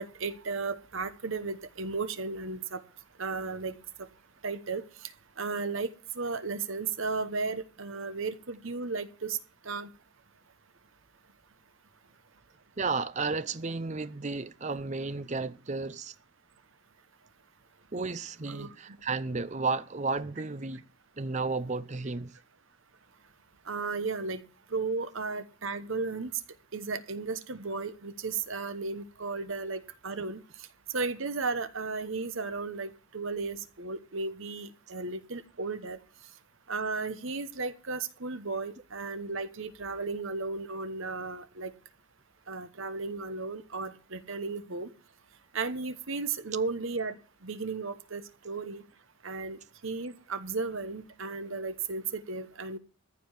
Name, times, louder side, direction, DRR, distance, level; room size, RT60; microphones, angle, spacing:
voice 1, 0.0-2.8 3.2-3.7 4.4-4.8 5.4-5.9 6.2-9.4 9.7-9.9 18.5-18.7 23.7-24.4 24.7-26.3 26.7-30.4 30.9-36.0 36.7-41.7 42.5-44.9 45.5-47.2 47.4-48.8 49.2-52.8, right 4 dB, 65° right, 1.0 m, -34 dB
voice 2, 12.8-16.1 17.9-20.8 21.2-22.4, right 4 dB, 30° right, 0.6 m, -33 dB
14.5 x 5.2 x 9.0 m
head